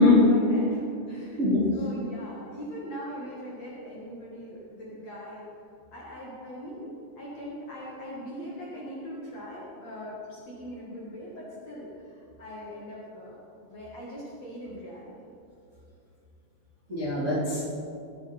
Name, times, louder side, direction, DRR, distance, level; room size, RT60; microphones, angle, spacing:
voice 1, 0.0-1.4 1.7-5.5 5.9-15.1, equal, 50° left, -6 dB, 2.6 m, -41 dB
voice 2, 1.4-1.8 16.9-17.6, left 2 dB, 20° right, -8 dB, 2.3 m, -22 dB
21.5 x 9.5 x 4.4 m, 2.6 s
omnidirectional pair, 5.0 m